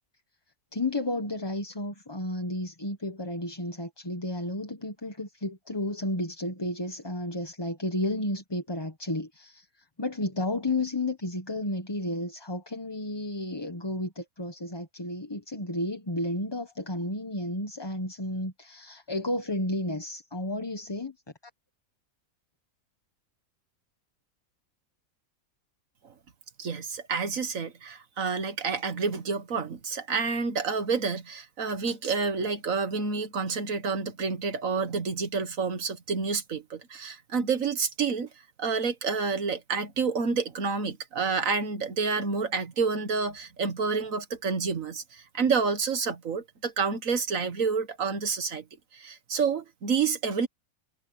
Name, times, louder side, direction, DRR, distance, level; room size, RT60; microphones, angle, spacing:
voice 1, 0.7-21.2, left 1 dB, 20° left, 1.3 m, -32 dB
voice 2, 26.6-38.3 38.6-48.6 48.9-50.5, right 5 dB, 65° right, 1.8 m, -29 dB
omnidirectional pair, 1.5 m